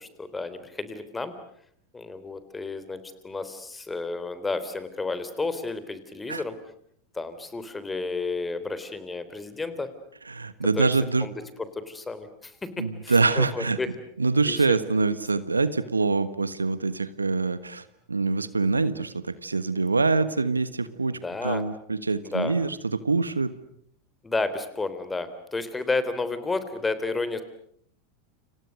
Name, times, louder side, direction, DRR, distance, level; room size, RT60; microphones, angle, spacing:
voice 1, 0.0-1.3 1.9-6.5 7.1-9.9 10.8-10.9 11.2-11.3 11.6-13.9 14.4-14.8 15.0-15.4 21.1-21.6 22.2-22.5 24.2-27.4, left 3 dB, 15° left, 12 dB, 3.6 m, -32 dB
voice 2, 10.3-11.3 12.8-13.8 14.2-23.5, right 3 dB, 90° right, 14 dB, 1.4 m, -25 dB
30.0 x 28.0 x 6.6 m, 0.68 s
figure-of-eight pair, 90°, 0 cm